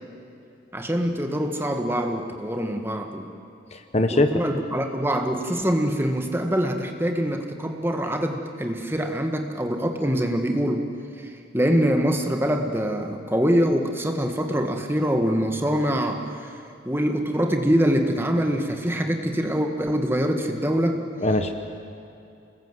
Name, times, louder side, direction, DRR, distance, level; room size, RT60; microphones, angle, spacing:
voice 1, 0.7-3.3 4.1-10.9 11.2-16.5 16.8-21.0, equal, 10° right, 4 dB, 1.5 m, -24 dB
voice 2, 3.7-4.3 21.2-21.5, left 1 dB, 35° left, 7 dB, 1.1 m, -21 dB
27.0 x 20.5 x 7.9 m, 2.7 s
head